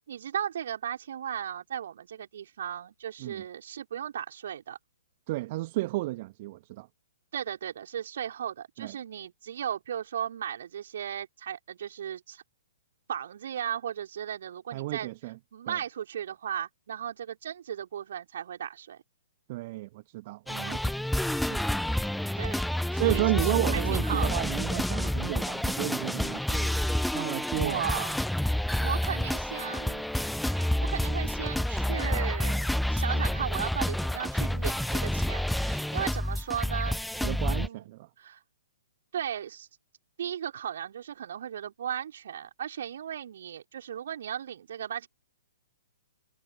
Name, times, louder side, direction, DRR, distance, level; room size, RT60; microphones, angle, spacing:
voice 1, 0.1-4.8 7.3-12.4 13.1-15.1 15.5-19.0 21.9-22.0 22.4-22.6 22.9-24.4 27.5-28.2 28.8-30.0 30.5-37.0 37.5-38.4 39.1-39.7 40.2-45.1, right 9 dB, 55° right, 4.9 m, -36 dB
voice 2, 5.3-6.9 8.8-9.0 14.7-15.4 15.7-15.8 19.5-20.9 21.5-21.6 22.9-26.8 27.1-27.9 37.2-38.1, right 19 dB, 40° right, 2.3 m, -32 dB
sound 1, 20.5-37.7, left 1 dB, ahead, 0.8 m, -29 dB
figure-of-eight pair, 120°, 0 cm